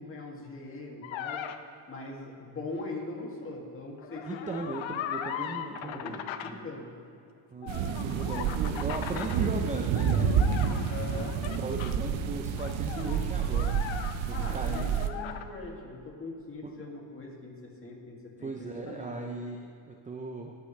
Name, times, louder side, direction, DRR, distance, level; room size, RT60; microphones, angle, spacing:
voice 1, 0.0-1.4 1.9-4.6 5.0-6.9 10.9-11.3 14.3-19.3, left 2 dB, 25° left, -2 dB, 2.2 m, -41 dB
sound 1, 1.0-1.6 4.0-6.5 7.6-9.4 9.9-11.9 12.6-14.5 14.7-15.4, left 9 dB, 70° left, 0.8 m, -39 dB
voice 2, 4.3-6.6 7.5-11.3 11.6-13.9 14.2-14.9 16.6-16.7 18.4-20.5, right 3 dB, 15° right, 3 dB, 0.5 m, -38 dB
sound 2, 7.7-15.1, right 7 dB, 75° right, 0.9 m, -29 dB
20.0 x 8.4 x 3.2 m, 2.5 s
cardioid pair, 135°, 48 cm